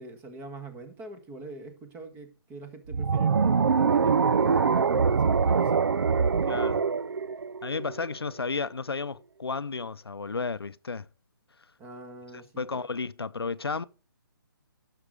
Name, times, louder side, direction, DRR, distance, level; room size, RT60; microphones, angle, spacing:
voice 1, 0.0-5.9 11.8-12.8, right 2 dB, 15° right, 1.4 m, -44 dB
sound 1, 2.9-8.1, right 5 dB, 75° right, 0.5 m, -24 dB
voice 2, 6.4-6.8 7.6-11.1 12.6-13.8, left 4 dB, 90° left, 0.6 m, -33 dB
11.0 x 6.6 x 4.8 m
figure-of-eight pair, 150°, 12 cm